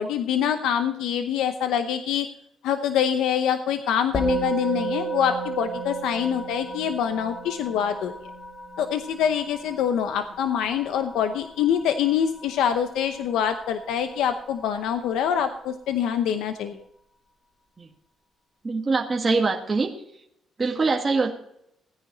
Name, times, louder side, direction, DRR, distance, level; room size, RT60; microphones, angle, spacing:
voice 1, 0.0-2.3 2.6-8.1 8.8-16.8, left 8 dB, 90° left, 8 dB, 0.8 m, -25 dB
Musical instrument, 4.1-13.7, right 3 dB, 35° left, 2.9 m, -33 dB
voice 2, 18.6-19.9 20.6-21.3, right 3 dB, 30° right, 0 dB, 1.6 m, -23 dB
17.0 x 9.9 x 3.9 m, 0.76 s
cardioid pair, 90°, 0 cm